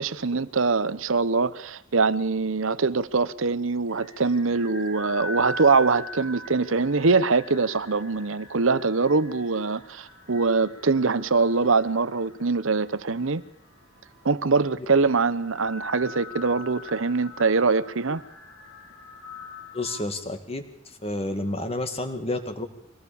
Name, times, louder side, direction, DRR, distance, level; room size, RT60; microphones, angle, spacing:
voice 1, 0.0-13.4 14.2-18.2, right 4 dB, 70° right, 0.9 m, -23 dB
sound 1, 3.9-20.0, left 2 dB, 90° left, 7.0 m, -42 dB
voice 2, 19.7-22.7, left 2 dB, 30° left, 2.3 m, -30 dB
24.0 x 18.0 x 7.1 m
head